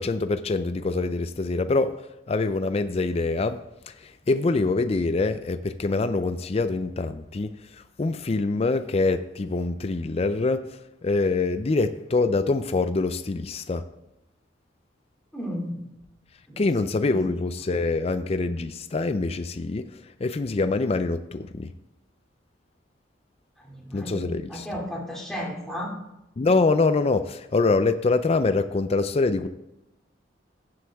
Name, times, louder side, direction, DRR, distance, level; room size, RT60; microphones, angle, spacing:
voice 1, 0.0-1.9 2.3-3.6 4.0-7.5 8.0-10.6 11.0-13.8 16.6-19.8 20.2-21.7 23.9-24.7 26.4-29.5, left 3 dB, 35° left, 10 dB, 0.4 m, -24 dB
voice 2, 15.3-15.8 16.5-16.7 17.1-17.2 23.7-25.9, equal, ahead, -3 dB, 2.5 m, -34 dB
15.5 x 7.9 x 3.5 m, 0.91 s
head